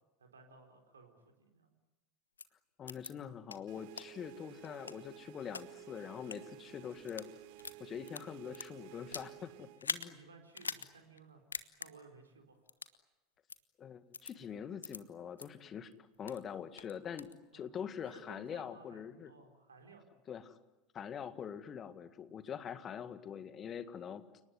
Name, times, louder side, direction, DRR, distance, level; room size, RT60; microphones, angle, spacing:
voice 1, 0.2-1.7 10.0-11.4 11.7-12.6 17.5-17.7 18.0-20.0, right 4 dB, 75° right, 3 dB, 4.3 m, -58 dB
sound 1, 2.4-2.5 2.9-3.1 3.5-3.6 4.0-4.1 4.6-5.6 6.2-6.4 6.9-7.3 7.6-9.3 9.8-10.1 10.5-10.9 11.2-11.3 11.5-11.9 12.7-13.0 13.5-13.6 14.1-14.3 14.8-15.0 15.4-15.5 15.9-16.4 16.8-17.3, left 5 dB, 80° left, 1.0 m, -42 dB
voice 2, 2.8-7.3 7.8-10.2 13.8-15.9 16.2-19.3 20.3-20.6 20.9-24.2, left 8 dB, 30° left, 11 dB, 1.9 m, -44 dB
sound 2, 3.7-9.8, right 16 dB, 55° right, 0.9 m, -54 dB
30.0 x 19.0 x 9.7 m, 1.0 s
figure-of-eight pair, 75°, 0 cm